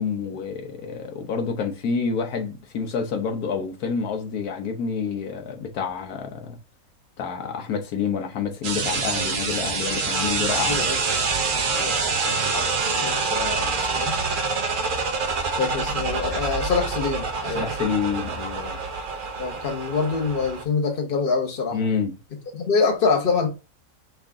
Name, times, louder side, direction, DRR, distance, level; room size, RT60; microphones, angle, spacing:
voice 1, 0.0-6.6 7.2-10.8 17.5-18.8 21.7-22.2, left 6 dB, 80° left, 1.4 m, -28 dB
sound 1, 8.6-20.6, right 4 dB, 60° right, 0.5 m, -26 dB
voice 2, 10.7-11.0 11.8-12.2 12.5-12.6 13.0-14.1 15.6-17.6 19.4-21.8 22.5-23.5, left 4 dB, 40° left, 1.2 m, -25 dB
5.8 x 2.6 x 3.5 m
omnidirectional pair, 1.6 m